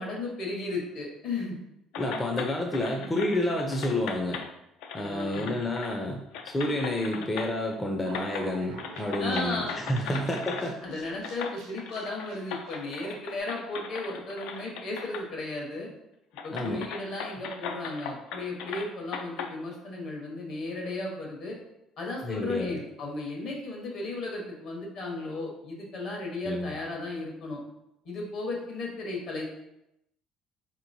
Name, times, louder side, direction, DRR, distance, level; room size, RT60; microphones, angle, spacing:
voice 1, 0.0-1.6 3.0-3.1 4.9-5.6 9.2-9.8 10.1-10.2 10.8-15.9 16.4-21.6 22.0-27.6 28.0-29.4, left 2 dB, 60° left, -1 dB, 1.1 m, -35 dB
sound 1, 1.9-4.5 4.8-6.0 6.3-7.7 8.1-8.5 8.8-10.7 11.2-15.3 15.6-15.7 16.4-19.5, left 6 dB, 85° left, 0.3 m, -39 dB
voice 2, 2.0-4.4 4.9-10.8 16.5-16.9 22.2-22.8 26.4-26.7, left 1 dB, 15° left, 0 dB, 0.4 m, -30 dB
sound 2, 8.0-13.2, right 4 dB, 90° right, 0.6 m, -47 dB
4.0 x 2.9 x 2.6 m, 0.84 s
cardioid pair, 120°, 0 cm